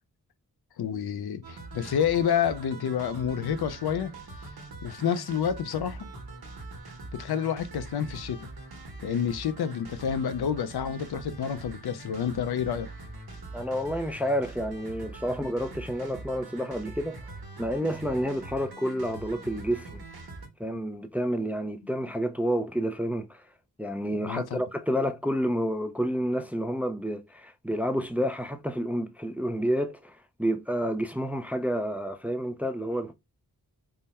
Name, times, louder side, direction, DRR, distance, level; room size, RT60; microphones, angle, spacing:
voice 1, 0.8-4.1 4.8-6.1 7.1-8.5 9.0-12.9 20.7-20.8 24.2-24.6, left 8 dB, 85° left, 0.5 m, -29 dB
sound 1, 1.4-20.5, right 2 dB, 75° right, 1.1 m, -43 dB
voice 2, 13.5-17.2 17.6-20.0 20.6-23.4 23.8-33.1, equal, 5° right, 0.4 m, -29 dB
3.6 x 2.1 x 4.1 m
wide cardioid pair, 105°, 38 cm